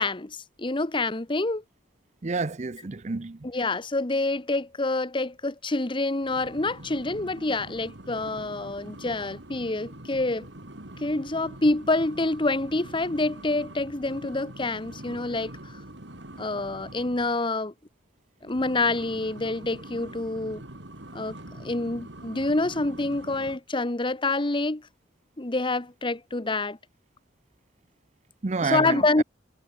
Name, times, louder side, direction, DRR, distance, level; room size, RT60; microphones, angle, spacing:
voice 1, 0.0-1.6 3.4-10.5 11.0-15.8 16.4-17.7 18.4-20.6 21.1-21.3 21.6-24.8 25.4-26.8 28.6-29.2, left 2 dB, 25° left, 1.1 m, -27 dB
voice 2, 2.2-3.4 28.4-29.2, right 4 dB, 40° right, 0.6 m, -29 dB
sound 1, 6.2-17.4 18.4-23.6, right 1 dB, 70° right, 3.9 m, -44 dB
head